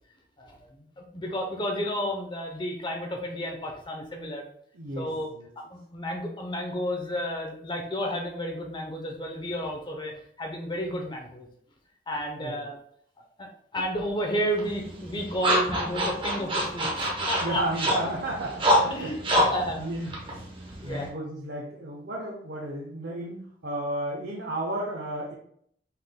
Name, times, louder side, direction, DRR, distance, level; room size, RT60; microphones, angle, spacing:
voice 1, 0.4-4.4 5.0-5.3 5.6-11.5 12.1-12.8 13.4-17.6 18.9-19.8 20.8-21.1, equal, 25° left, 2 dB, 0.8 m, -32 dB
voice 2, 4.7-5.5 12.4-12.6 17.4-19.5 19.8-20.4 20.8-25.3, right 1 dB, 65° right, -3 dB, 0.8 m, -33 dB
sound 1, 14.6-21.1, equal, 30° right, 0.8 m, -27 dB
5.7 x 3.7 x 2.2 m, 0.65 s
head